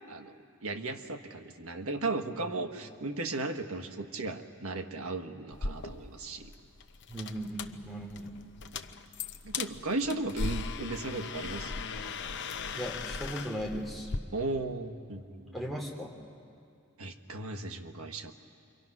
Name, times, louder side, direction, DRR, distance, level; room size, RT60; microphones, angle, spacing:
voice 1, 0.6-6.5 9.4-12.1 14.3-15.5 17.0-18.3, right 2 dB, 85° right, 6 dB, 1.4 m, -36 dB
sound 1, 5.5-14.2, left 4 dB, 55° left, 0.7 m, -38 dB
voice 2, 7.1-8.3 12.8-14.1 15.5-16.1, equal, ahead, -3 dB, 2.9 m, -37 dB
27.5 x 23.5 x 6.0 m, 2.4 s
head